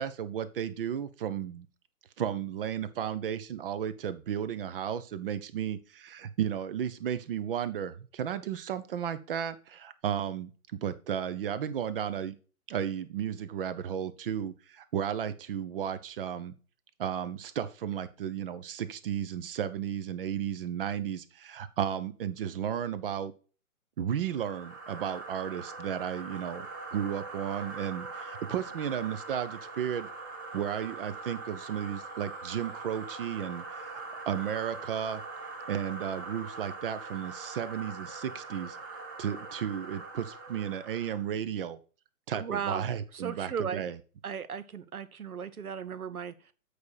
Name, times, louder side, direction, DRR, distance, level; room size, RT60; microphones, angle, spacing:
voice 1, 0.0-1.7 2.2-12.3 12.7-16.5 17.0-23.3 24.0-26.7 26.9-30.1 30.5-35.2 35.7-38.8 39.2-41.8 42.3-44.0, right 9 dB, 40° right, 14 dB, 0.8 m, -34 dB
sound 1, 24.3-41.3, right 3 dB, 15° right, 0.5 m, -42 dB
voice 2, 42.3-43.9 44.2-46.5, right 7 dB, 75° right, 15 dB, 1.0 m, -36 dB
8.2 x 5.0 x 4.6 m, 0.36 s
figure-of-eight pair, 130°, 44 cm